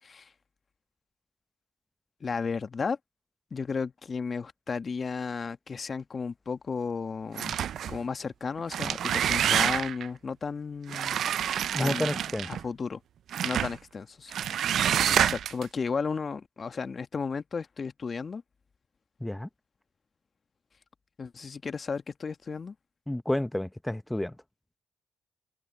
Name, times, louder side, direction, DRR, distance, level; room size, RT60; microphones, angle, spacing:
voice 1, 2.2-3.0 3.5-7.6 7.9-11.2 11.8-12.2 12.5-13.0 13.4-18.4 21.2-22.7, left 5 dB, 50° left, 1.5 m, -34 dB
sound 1, 7.4-8.0 8.6-10.1 10.9-12.6 13.3-13.8 14.3-15.6, right 9 dB, 70° right, 0.5 m, -27 dB
voice 2, 11.7-12.5 19.2-19.5 23.1-24.4, left 1 dB, 10° left, 1.2 m, -30 dB
hypercardioid pair, 45°, 0 cm